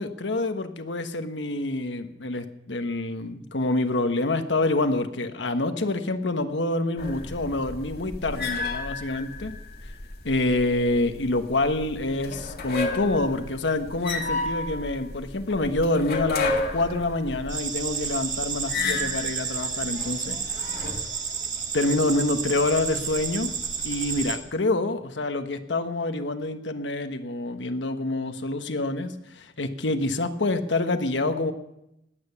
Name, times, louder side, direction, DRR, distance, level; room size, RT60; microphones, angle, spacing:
voice 1, 0.0-9.5 10.2-20.4 21.7-23.5 23.8-31.5, left 2 dB, 75° left, 8 dB, 1.2 m, -27 dB
sound 1, 7.0-21.0, left 3 dB, 60° left, 1.9 m, -32 dB
sound 2, 17.5-24.4, right 6 dB, 45° right, 1.9 m, -31 dB
20.0 x 8.9 x 7.0 m, 0.85 s
head